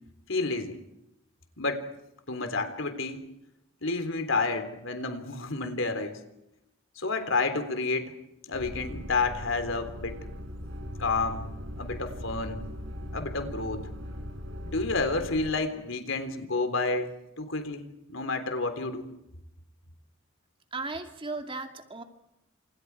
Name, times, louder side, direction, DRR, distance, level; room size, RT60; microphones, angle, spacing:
voice 1, 0.3-0.8 1.6-1.9 2.3-3.3 3.8-6.2 7.0-8.1 8.5-10.2 11.0-11.5 11.8-12.6 13.1-13.9 14.6-19.1, left 3 dB, 80° left, 8 dB, 3.7 m, -30 dB
sound 1, 8.5-15.5, equal, 70° right, 6.2 m, -39 dB
voice 2, 20.7-22.0, right 3 dB, 25° right, 5 dB, 2.4 m, -36 dB
30.0 x 27.5 x 4.8 m, 0.86 s
head